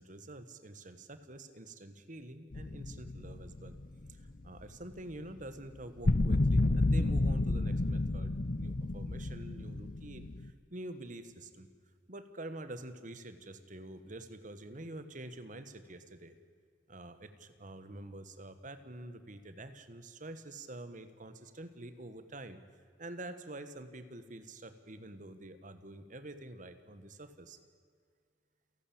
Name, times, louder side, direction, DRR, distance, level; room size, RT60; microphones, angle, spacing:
voice 1, 0.0-3.8 4.1-11.7 12.1-16.3 16.9-22.6 23.0-27.6, right 1 dB, 45° right, 11 dB, 1.5 m, -47 dB
sound 1, 2.5-4.5 6.0-10.5, left 2 dB, 45° left, 0.7 m, -31 dB
29.0 x 12.0 x 8.8 m, 2.1 s
head